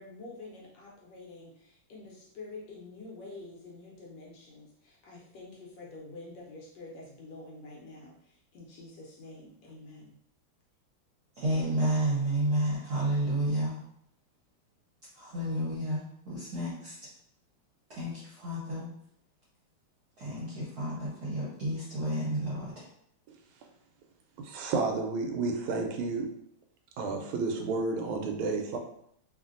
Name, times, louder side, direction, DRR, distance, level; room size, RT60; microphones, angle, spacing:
voice 1, 0.0-10.2, left 2 dB, 70° left, -3 dB, 1.1 m, -47 dB
voice 2, 11.3-13.8 15.1-16.9 18.0-18.9 20.2-22.8, right 1 dB, 55° right, -9 dB, 1.2 m, -31 dB
voice 3, 24.4-26.3 27.0-28.8, right 3 dB, 90° right, 3 dB, 1.4 m, -31 dB
3.2 x 2.4 x 2.5 m, 0.70 s
omnidirectional pair, 2.2 m